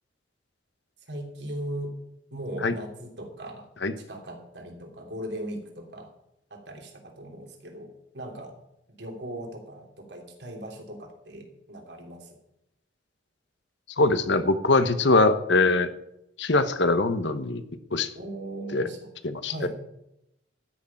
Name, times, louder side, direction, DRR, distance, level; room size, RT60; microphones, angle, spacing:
voice 1, 1.1-1.9 2.3-3.7 4.1-6.1 6.5-8.5 9.0-12.4 18.1-19.0 19.4-19.7, right 1 dB, 65° right, 2 dB, 3.1 m, -38 dB
voice 2, 14.0-15.9 16.4-17.6 17.9-18.1 18.7-18.9 19.2-19.7, left 3 dB, 70° left, 11 dB, 1.1 m, -22 dB
13.5 x 6.6 x 8.8 m, 0.84 s
head